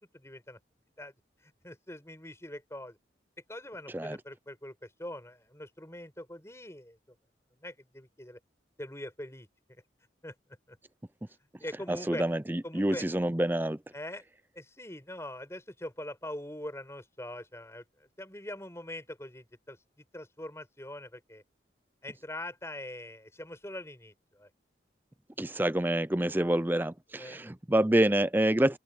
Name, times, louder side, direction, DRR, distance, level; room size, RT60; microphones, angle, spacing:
voice 1, 0.1-0.6 1.0-1.1 1.4-3.0 3.5-7.0 7.6-8.4 8.8-9.5 10.2-10.3 10.7-10.8 11.6-12.2 12.6-13.1 13.9-14.2 14.5-19.8 20.1-21.4 22.0-24.5 27.2-27.4, left 1 dB, 15° left, 6.0 m, -43 dB
voice 2, 11.9-13.8 25.4-28.8, right 1 dB, 10° right, 0.5 m, -27 dB
open air
head